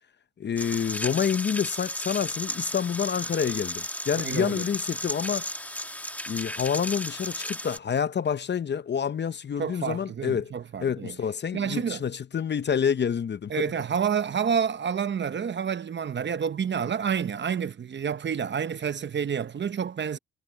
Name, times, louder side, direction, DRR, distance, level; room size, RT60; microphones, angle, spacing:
voice 1, 0.4-5.5 6.3-10.5 10.8-13.7, left 7 dB, 35° left, 0.7 m, -28 dB
sound 1, 0.6-7.8, left 1 dB, 5° left, 2.1 m, -34 dB
voice 2, 4.2-4.6 9.6-11.2 11.5-12.0 13.5-20.2, right 7 dB, 40° right, 0.8 m, -29 dB
cardioid pair, 90°, 30 cm